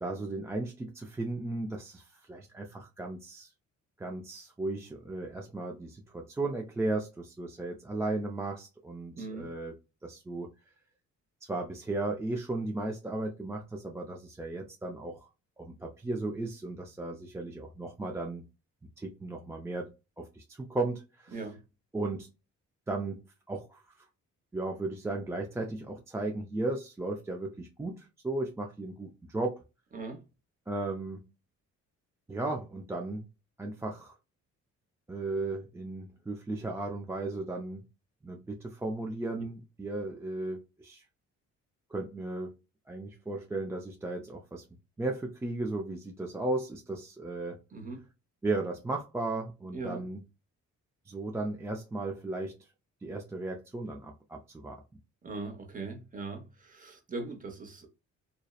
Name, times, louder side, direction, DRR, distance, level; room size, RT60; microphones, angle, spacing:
voice 1, 0.0-3.5 4.0-9.7 10.0-10.5 11.5-15.2 15.6-18.4 19.0-21.4 21.9-22.3 22.9-23.2 23.5-23.8 24.5-29.6 30.7-31.3 32.3-33.3 33.6-34.1 35.1-37.9 38.2-41.0 41.9-42.5 42.9-44.6 45.0-47.6 48.4-50.2 51.1-52.5 53.0-54.8, right 2 dB, 10° right, 0.3 m, -35 dB
voice 2, 9.1-9.5 21.3-21.6 29.9-30.2 39.3-39.4 47.7-48.0 49.7-50.0 55.2-57.9, right 3 dB, 25° right, 0.8 m, -40 dB
2.7 x 2.0 x 2.3 m
cardioid pair, 90°, 30 cm